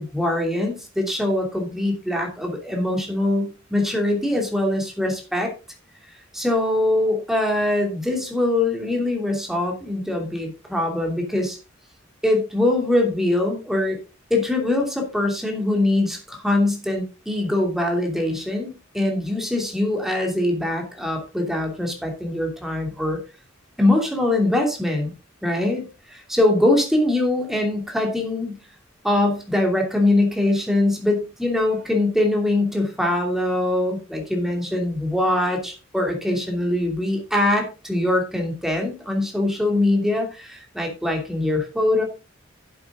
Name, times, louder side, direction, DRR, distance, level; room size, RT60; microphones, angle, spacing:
voice 1, 0.0-5.5 6.3-11.6 12.2-14.0 14.3-23.2 23.8-25.1 25.4-28.6 29.0-42.0, left 1 dB, ahead, 1 dB, 2.8 m, -22 dB
11.0 x 7.9 x 3.7 m, 0.30 s
head